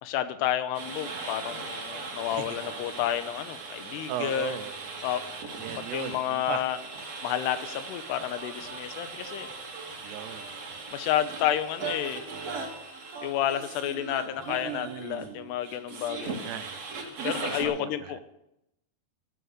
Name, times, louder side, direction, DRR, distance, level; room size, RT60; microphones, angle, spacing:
voice 1, 0.0-4.6 5.0-5.2 5.9-6.8 7.2-9.5 10.9-12.2 13.2-16.4 17.2-18.2, left 11 dB, 90° left, 11 dB, 3.1 m, -30 dB
sound 1, 0.7-17.7, right 4 dB, 45° right, 3.0 m, -39 dB
voice 2, 4.1-4.7 5.6-6.6 10.0-10.7 14.5-15.5 16.1-16.8 17.6-18.2, right 11 dB, 80° right, 12 dB, 2.9 m, -38 dB
13.0 x 7.9 x 9.5 m, 0.83 s
omnidirectional pair, 4.8 m